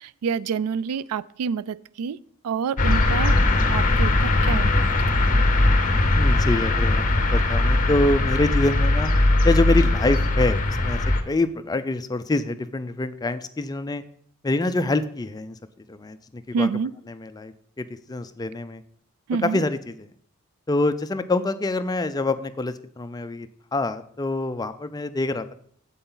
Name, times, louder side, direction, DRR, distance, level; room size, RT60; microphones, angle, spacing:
voice 1, 0.0-2.2 2.4-3.3 3.7-5.2 16.5-16.9 19.3-19.6, right 6 dB, 85° right, 19 dB, 0.3 m, -28 dB
sound 1, 2.8-11.2, left 2 dB, 35° left, 0.9 m, -20 dB
voice 2, 6.1-9.1 9.4-14.0 14.4-15.6 15.9-16.7 17.1-18.8 19.4-20.1 20.7-25.5, left 2 dB, 15° left, 11 dB, 0.4 m, -26 dB
8.2 x 7.8 x 3.9 m, 0.63 s
head